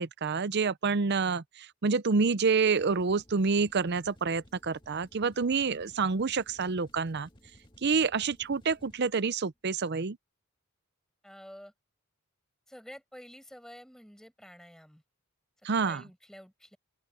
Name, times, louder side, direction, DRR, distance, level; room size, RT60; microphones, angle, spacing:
voice 1, 0.0-7.3 7.8-10.2 15.6-16.0, right 4 dB, 50° right, 0.6 m, -28 dB
sound 1, 2.7-9.2, equal, 20° left, 2.1 m, -58 dB
voice 2, 11.2-11.7 12.7-15.0 15.8-16.8, equal, ahead, 5.7 m, -50 dB
open air
head